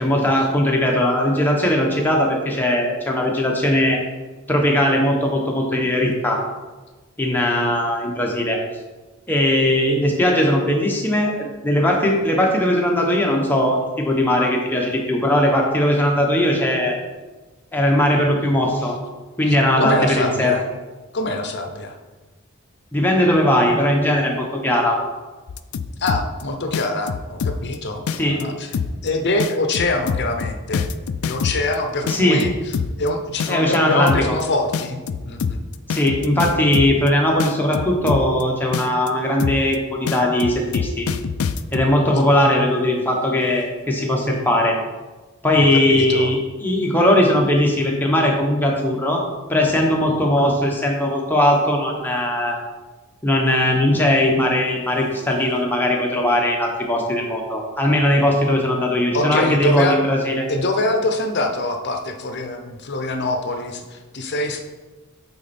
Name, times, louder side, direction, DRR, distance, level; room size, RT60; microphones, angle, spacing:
voice 1, 0.0-4.0 4.5-6.4 7.2-8.6 9.3-17.0 17.7-18.9 19.4-20.5 22.9-25.0 28.2-28.5 32.0-32.4 33.5-34.3 35.9-41.1 41.7-44.8 45.4-49.2 49.5-52.6 53.2-60.5, left 1 dB, 10° left, -1 dB, 1.0 m, -19 dB
voice 2, 19.5-20.6 21.1-22.0 26.0-28.0 28.3-28.7 29.0-30.9 31.2-32.5 33.0-35.8 42.4-42.7 45.6-46.3 59.1-60.0 60.5-64.6, left 2 dB, 50° left, 5 dB, 0.8 m, -24 dB
sound 1, 25.5-26.4 26.7-27.7 28.1-28.4 28.7-29.1 29.4-31.7 32.1-33.1 33.4-33.7 34.1-34.4 34.7-37.1 37.4-38.4 38.7-39.1 39.4-39.7 40.1-41.9, left 6 dB, 75° left, 0.4 m, -25 dB
8.4 x 4.3 x 4.3 m, 1.3 s
head